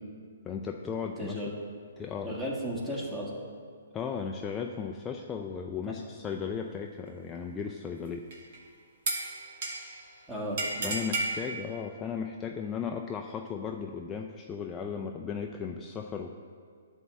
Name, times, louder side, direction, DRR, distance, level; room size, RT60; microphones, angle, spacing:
voice 1, 0.4-1.3 2.0-2.4 3.9-8.3 10.8-16.4, left 6 dB, 15° left, 2 dB, 0.4 m, -36 dB
voice 2, 1.2-1.5 2.2-3.3 5.8-5.9 10.3-10.9, equal, 10° right, -4 dB, 1.8 m, -34 dB
sound 1, 8.3-8.6 9.1-10.0 10.6-11.4, right 2 dB, 50° right, 1.6 m, -32 dB
11.0 x 3.7 x 7.1 m, 2.1 s
figure-of-eight pair, 130°, 0 cm